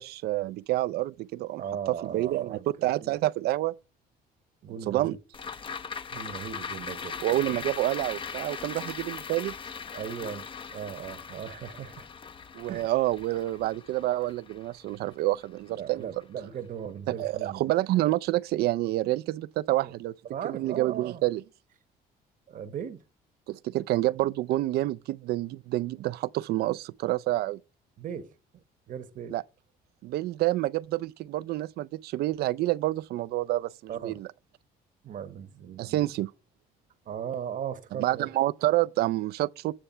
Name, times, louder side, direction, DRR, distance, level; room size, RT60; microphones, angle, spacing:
voice 1, 0.0-1.6 2.1-3.7 4.9-5.2 7.2-9.5 12.5-16.1 17.1-20.1 20.4-21.4 23.5-27.6 29.3-29.4 30.0-34.3 35.8-36.3 38.0-39.7, right 16 dB, 70° right, 0.4 m, -28 dB
voice 2, 1.6-2.7 3.0-3.1 4.6-5.2 6.1-7.7 8.6-8.7 9.9-12.1 12.7-12.9 15.7-17.7 19.8-19.9 20.2-21.2 22.5-23.0 28.0-28.3 28.9-29.4 33.9-34.2 35.0-36.0 37.1-38.3, right 8 dB, 50° right, 1.0 m, -38 dB
sound 1, 5.3-15.8 16.2-16.3, left 6 dB, 30° left, 0.6 m, -40 dB
8.7 x 3.3 x 6.6 m
cardioid pair, 110°, 17 cm